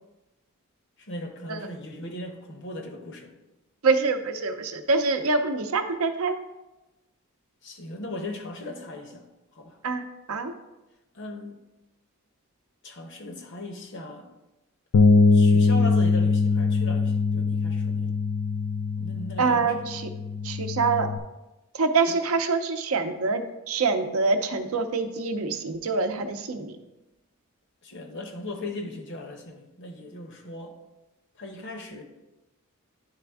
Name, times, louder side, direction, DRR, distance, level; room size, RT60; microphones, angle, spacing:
voice 1, 1.0-3.3 7.6-9.3 9.5-9.8 11.1-11.6 12.8-14.3 15.3-18.2 19.0-20.0 22.1-22.2 27.8-30.8 31.4-32.0, left 1 dB, 55° left, 4 dB, 0.9 m, -38 dB
voice 2, 3.8-6.4 9.8-10.5 19.4-20.0 20.4-21.1 21.7-26.7, right 4 dB, 70° right, 7 dB, 0.6 m, -25 dB
Bass guitar, 14.9-21.2, left 4 dB, 85° left, 0.4 m, -22 dB
9.7 x 3.4 x 3.5 m, 1.0 s
head